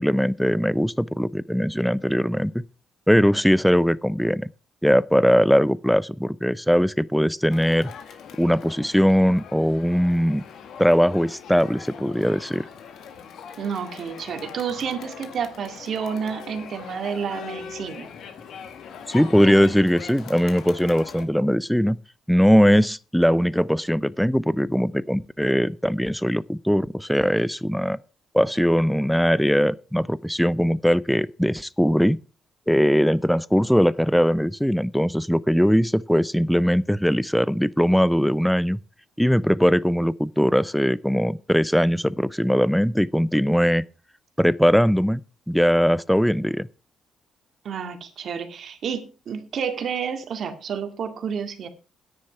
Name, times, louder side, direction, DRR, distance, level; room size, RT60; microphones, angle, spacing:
voice 1, 0.0-2.6 3.1-4.5 4.8-7.9 8.4-10.4 10.8-12.7 19.1-22.0 22.3-28.0 28.3-32.2 32.7-38.8 39.2-43.8 44.4-45.2 45.5-46.7, equal, ahead, 0.5 m, -20 dB
Crowd, 7.5-21.2, left 7 dB, 70° left, 1.8 m, -41 dB
voice 2, 13.6-18.1 47.6-51.7, right 7 dB, 60° right, 2.1 m, -30 dB
10.0 x 9.8 x 5.7 m
cardioid pair, 90°, 0 cm